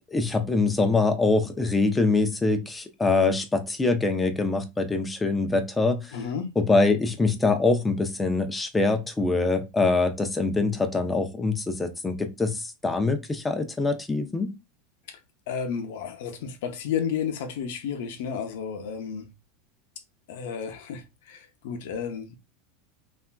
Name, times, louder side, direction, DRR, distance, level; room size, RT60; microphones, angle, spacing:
voice 1, 0.1-6.1 6.6-14.5, left 3 dB, 10° left, 0.5 m, -24 dB
voice 2, 6.1-6.5 15.1-15.2 15.5-19.3 20.3-22.4, left 7 dB, 75° left, 0.6 m, -32 dB
3.3 x 2.4 x 2.2 m
supercardioid pair, 125°, 0 cm